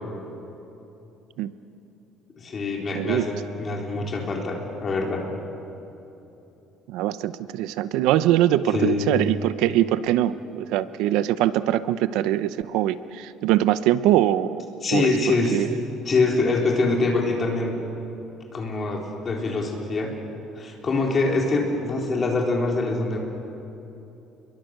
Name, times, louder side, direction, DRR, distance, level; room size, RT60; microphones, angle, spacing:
voice 1, 2.4-5.3 8.7-9.1 14.8-15.7 16.0-17.7 18.5-20.1 20.6-23.2, left 3 dB, 30° left, 0 dB, 3.9 m, -24 dB
voice 2, 2.9-3.3 6.9-14.6 14.9-15.1 15.5-15.7, right 13 dB, 80° right, 14 dB, 0.7 m, -22 dB
30.0 x 22.5 x 6.7 m, 3.0 s
cardioid pair, 155°, 0 cm